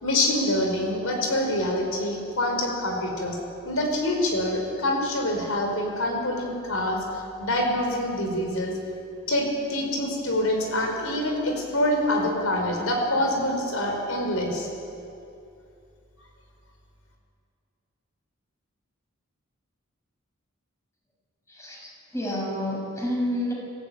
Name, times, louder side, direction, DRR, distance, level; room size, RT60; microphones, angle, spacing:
voice 1, 0.0-3.4 3.6-7.0 7.4-8.7 9.3-14.7, left 1 dB, 80° left, 2 dB, 5.1 m, -25 dB
voice 2, 21.5-23.5, left 1 dB, 15° left, -2 dB, 6.5 m, -29 dB
27.0 x 15.0 x 8.9 m, 2.6 s
head